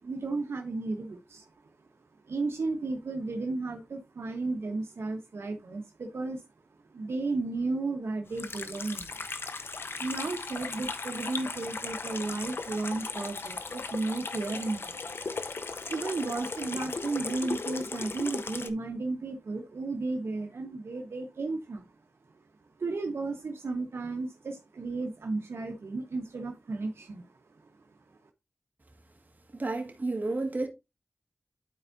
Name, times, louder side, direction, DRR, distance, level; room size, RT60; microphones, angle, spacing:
voice 1, 0.0-1.7 2.2-6.4 6.9-9.1 10.0-15.0 15.9-21.9 22.8-27.3 27.6-27.7, right 3 dB, 80° right, 1.0 m, -34 dB
Water tap faucet / Sink (filling or washing), 8.3-18.7, left 4 dB, 65° left, 0.7 m, -37 dB
voice 2, 29.5-30.7, right 2 dB, 45° right, 1.7 m, -31 dB
11.5 x 4.6 x 2.6 m
wide cardioid pair, 80°, 4 cm